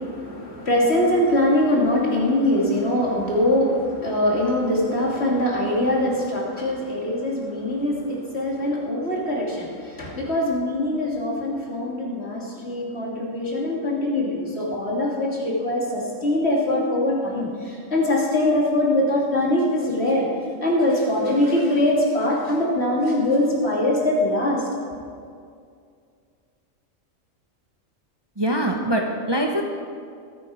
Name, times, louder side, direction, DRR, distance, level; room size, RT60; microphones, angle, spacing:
voice 1, 0.0-20.3 20.6-24.7, left 1 dB, 50° left, -3 dB, 2.8 m, -22 dB
voice 2, 28.4-29.6, right 1 dB, 20° right, 1 dB, 0.9 m, -23 dB
21.5 x 9.3 x 4.9 m, 2.3 s
omnidirectional pair, 1.4 m